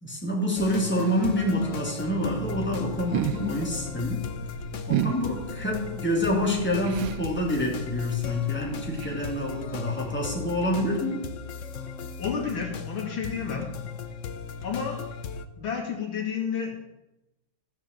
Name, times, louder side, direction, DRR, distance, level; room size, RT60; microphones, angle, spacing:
voice 1, 0.0-4.2 4.9-11.2, left 1 dB, 5° left, -2 dB, 3.1 m, -27 dB
sound 1, 0.6-15.4, left 6 dB, 55° left, 0.9 m, -37 dB
sound 2, 2.4-9.7, right 10 dB, 80° right, 1.5 m, -35 dB
voice 2, 12.2-13.7 14.6-15.0 15.6-16.8, left 6 dB, 80° left, 0 dB, 3.2 m, -30 dB
15.0 x 6.9 x 8.1 m, 0.97 s
omnidirectional pair, 2.2 m